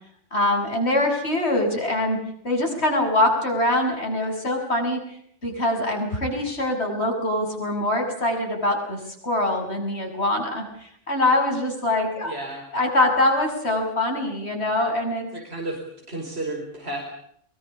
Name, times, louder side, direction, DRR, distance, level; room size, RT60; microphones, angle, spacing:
voice 1, 0.3-5.0 5.4-12.3 12.7-15.3, left 1 dB, 60° left, 2 dB, 7.2 m, -23 dB
voice 2, 12.2-12.7 15.3-15.8 16.1-17.0, right 2 dB, 60° right, 1 dB, 5.3 m, -32 dB
23.0 x 22.5 x 8.5 m, 0.67 s
omnidirectional pair, 1.2 m